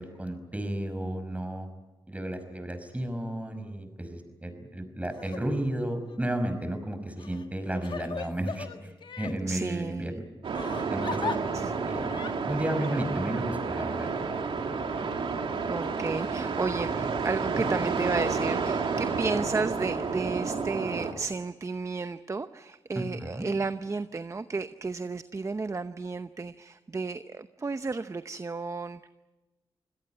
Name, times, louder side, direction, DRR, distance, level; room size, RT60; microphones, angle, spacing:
voice 1, 0.0-1.7 2.1-10.2 10.9-11.4 11.9-12.0 12.5-14.1 22.9-23.5, right 1 dB, 15° right, 8 dB, 5.6 m, -33 dB
Crying sobbing, 5.1-5.4 6.0-6.2 7.2-9.4 10.5-11.4 12.0-12.3, left 5 dB, 60° left, 1.8 m, -37 dB
voice 2, 9.4-10.2 11.3-11.7 15.7-29.1, right 4 dB, 35° right, 11 dB, 0.8 m, -33 dB
sound 1, 10.4-21.1, right 4 dB, 75° right, 3.1 m, -30 dB
27.0 x 17.5 x 9.2 m, 1.2 s
cardioid pair, 60°, 9 cm